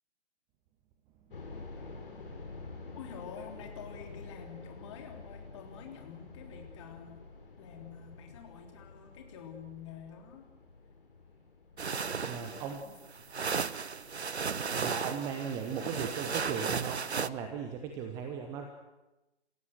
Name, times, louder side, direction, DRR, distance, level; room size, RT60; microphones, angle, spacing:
sound 1, 1.3-16.2 16.5-16.6 17.2-17.4, left 3 dB, 55° left, 4.4 m, -49 dB
voice 1, 2.9-7.2 7.6-10.5 11.9-12.9, left 7 dB, 25° left, 4 dB, 3.3 m, -48 dB
sound 2, 11.8-17.3, right 5 dB, 75° right, 0.9 m, -35 dB
voice 2, 12.3-12.8 14.8-18.7, right 7 dB, 10° right, 5 dB, 0.9 m, -37 dB
27.5 x 16.0 x 7.8 m, 1.0 s
figure-of-eight pair, 135°, 33 cm